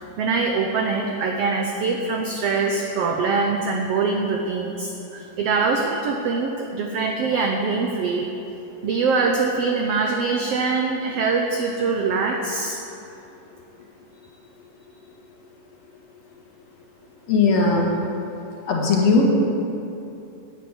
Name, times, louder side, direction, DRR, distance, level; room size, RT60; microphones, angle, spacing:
voice 1, 0.2-8.3 8.8-12.8, right 4 dB, 85° right, 2 dB, 1.3 m, -23 dB
voice 2, 17.3-17.9 18.7-19.3, left 4 dB, 60° left, -2 dB, 2.5 m, -18 dB
10.5 x 8.3 x 8.0 m, 2.8 s
omnidirectional pair, 3.7 m